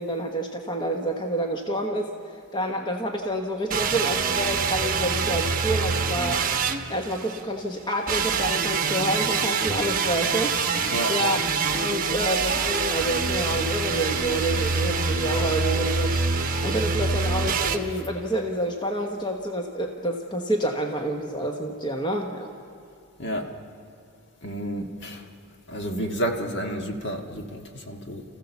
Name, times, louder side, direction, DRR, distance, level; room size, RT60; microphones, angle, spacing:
voice 1, 0.0-2.1 2.5-6.4 6.9-10.5 11.1-11.4 11.7-16.2 16.6-22.5, right 1 dB, 20° left, 2 dB, 1.2 m, -28 dB
sound 1, 3.7-7.4 8.1-17.8, right 5 dB, 40° right, 1.1 m, -25 dB
sound 2, 10.3-16.8, left 4 dB, 90° left, 1.7 m, -42 dB
voice 2, 24.4-25.3 25.7-28.2, right 1 dB, 50° left, 3 dB, 1.8 m, -30 dB
29.5 x 15.0 x 7.0 m, 2.3 s
head